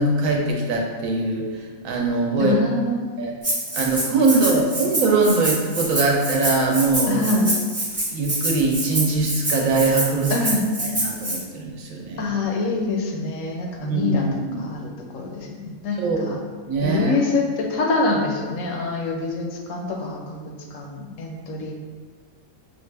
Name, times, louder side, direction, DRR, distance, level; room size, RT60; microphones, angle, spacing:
voice 1, 0.0-1.5 1.8-2.5 3.2-3.3 3.7-7.2 8.1-10.3 10.8-12.3 13.8-14.7 16.0-16.3 16.7-17.1, right 3 dB, 70° right, 0 dB, 1.1 m, -22 dB
voice 2, 2.4-3.3 7.1-7.6 10.3-10.7 12.2-16.4 16.8-21.7, left 3 dB, 70° left, 2 dB, 0.9 m, -25 dB
Rattle (instrument), 3.4-11.4, right 1 dB, 10° right, 0.8 m, -26 dB
5.1 x 2.4 x 3.3 m, 1.5 s
omnidirectional pair, 1.5 m